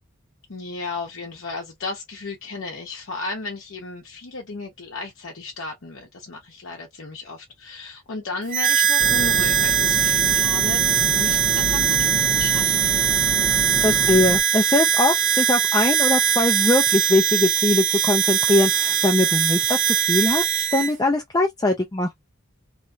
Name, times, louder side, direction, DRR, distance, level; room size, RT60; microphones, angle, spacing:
voice 1, 0.5-13.0, left 3 dB, 65° left, 0.7 m, -34 dB
Harmonica, 8.5-20.9, right 9 dB, 35° right, 0.5 m, -21 dB
sound 1, 9.0-14.4, right 1 dB, 55° right, 1.0 m, -29 dB
voice 2, 13.8-22.1, left 2 dB, 20° left, 0.4 m, -21 dB
3.0 x 2.3 x 2.6 m
head